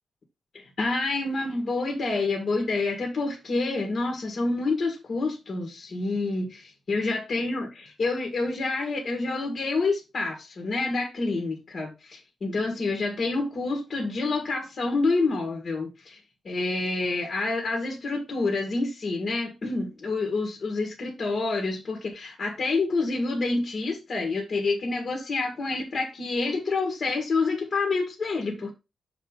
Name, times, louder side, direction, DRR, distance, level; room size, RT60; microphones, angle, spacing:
voice 1, 0.5-16.2 16.4-28.7, left 3 dB, 45° left, 1.7 m, -28 dB
6.3 x 3.7 x 4.7 m
wide cardioid pair, 135°, 0 cm